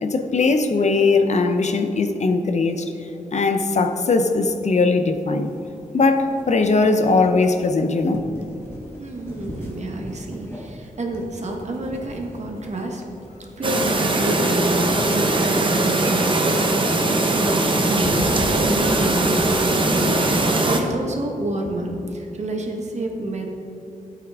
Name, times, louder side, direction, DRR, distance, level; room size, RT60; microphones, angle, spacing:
voice 1, 0.0-2.9 3.3-5.5 5.9-8.2, left 3 dB, 55° left, 7 dB, 0.7 m, -19 dB
sound 1, 4.2-20.5, equal, 15° left, 1.5 m, -39 dB
voice 2, 9.0-13.0 13.6-14.9 15.1-23.6, right 1 dB, 55° right, 1 dB, 1.3 m, -29 dB
Chirp tweet, 13.6-20.8, right 2 dB, 35° right, 1.0 m, -20 dB
12.5 x 8.4 x 3.6 m, 2.8 s
wide cardioid pair, 130°, 14 cm